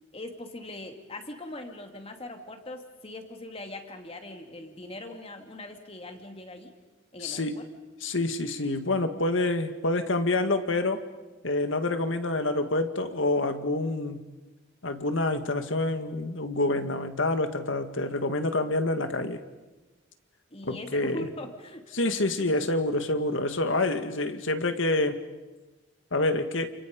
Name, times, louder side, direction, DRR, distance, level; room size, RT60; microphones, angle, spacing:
voice 1, 0.1-6.7 7.1-7.6 20.5-22.3, left 1 dB, 30° left, 5 dB, 2.7 m, -41 dB
voice 2, 7.2-7.6 8.0-11.0 11.4-14.3 14.8-19.4 20.6-21.3 21.9-25.2 26.1-26.7, left 2 dB, 75° left, 8 dB, 2.0 m, -27 dB
29.5 x 29.0 x 5.4 m, 1.2 s
head